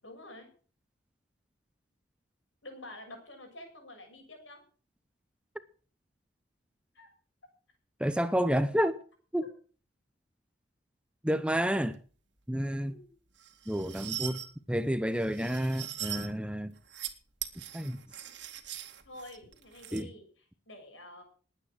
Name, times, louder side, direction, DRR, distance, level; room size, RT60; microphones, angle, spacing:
voice 1, 0.0-0.5 2.6-4.6 6.9-7.1 12.8-13.1 19.0-21.2, left 1 dB, 80° left, 7.0 m, -48 dB
voice 2, 8.0-9.0 9.3-9.5 11.2-12.0 12.5-12.9 13.7-14.4 14.7-16.7 17.7-18.0 19.9-20.1, equal, 5° right, 0.7 m, -29 dB
sound 1, 13.4-14.5 15.2-16.3 16.8-17.1 17.4-20.0, right 12 dB, 70° right, 2.1 m, -41 dB
20.0 x 9.1 x 6.2 m
head